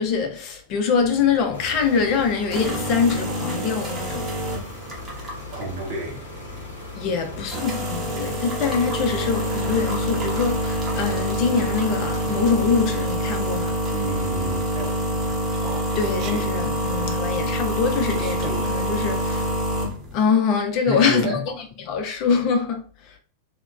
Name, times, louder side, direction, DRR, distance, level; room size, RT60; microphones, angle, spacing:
voice 1, 0.0-4.3 7.0-13.8 15.9-19.5 20.1-21.4 21.9-22.8, left 5 dB, 40° left, 0.5 m, -24 dB
sound 1, 1.0-20.2, equal, 20° right, 0.8 m, -27 dB
sound 2, 1.5-12.8, left 2 dB, 70° left, 0.7 m, -39 dB
voice 2, 5.5-6.3 13.9-15.1 20.9-21.4, right 1 dB, 50° right, 0.8 m, -30 dB
Human voice, 15.5-16.5 18.1-18.7, right 7 dB, 35° right, 0.3 m, -36 dB
2.8 x 2.1 x 2.2 m
figure-of-eight pair, 90°, 0 cm